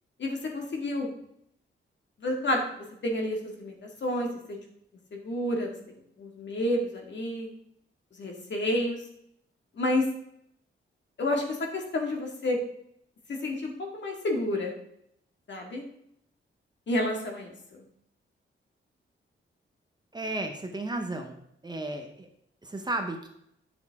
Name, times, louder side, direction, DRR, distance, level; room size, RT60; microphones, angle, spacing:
voice 1, 0.2-1.1 2.2-2.6 3.0-4.6 5.1-5.7 6.2-7.5 8.2-9.0 9.8-10.1 11.2-12.6 13.3-14.7 15.5-15.8 16.9-17.8, left 1 dB, 60° left, 1 dB, 2.0 m, -30 dB
voice 2, 20.1-21.4 21.6-22.3 22.6-23.3, right 2 dB, 20° right, 4 dB, 0.8 m, -33 dB
10.5 x 7.0 x 3.5 m, 0.73 s
wide cardioid pair, 175°, 21 cm